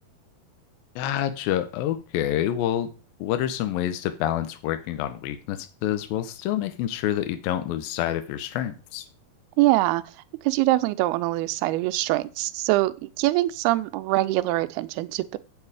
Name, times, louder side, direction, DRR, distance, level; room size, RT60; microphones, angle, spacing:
voice 1, 1.0-2.9 3.2-9.1, left 11 dB, 80° left, 2.2 m, -27 dB
voice 2, 9.6-10.0 10.4-15.4, right 17 dB, 80° right, 2.4 m, -23 dB
8.3 x 6.9 x 4.8 m
omnidirectional pair, 4.8 m